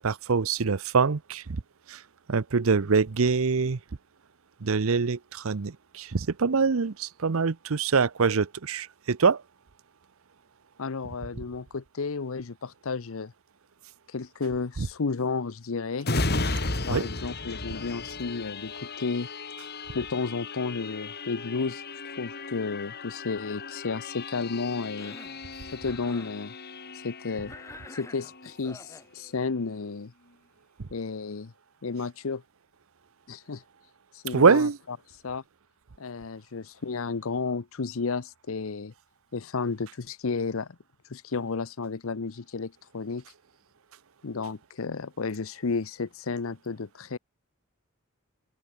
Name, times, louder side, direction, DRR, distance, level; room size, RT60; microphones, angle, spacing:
voice 1, 0.0-1.4 1.9-2.0 2.3-3.8 4.6-9.4 14.8-14.9 16.9-17.1 34.3-34.8, right 5 dB, 65° right, 0.7 m, -24 dB
voice 2, 10.8-13.3 14.1-16.1 16.9-19.3 19.9-21.8 22.2-25.2 25.7-26.5 26.9-27.5 27.9-30.1 30.9-31.5 31.8-32.4 33.3-33.6 34.1-35.0 35.2-35.4 36.0-38.9 39.3-40.7 41.1-43.2 44.2-47.2, left 4 dB, 65° left, 0.7 m, -32 dB
sound 1, 16.0-29.3 29.8-29.9, left 3 dB, 45° left, 3.0 m, -35 dB
Cough, 24.8-25.4 25.8-26.4 27.5-29.1, left 2 dB, 15° left, 2.4 m, -47 dB
open air
head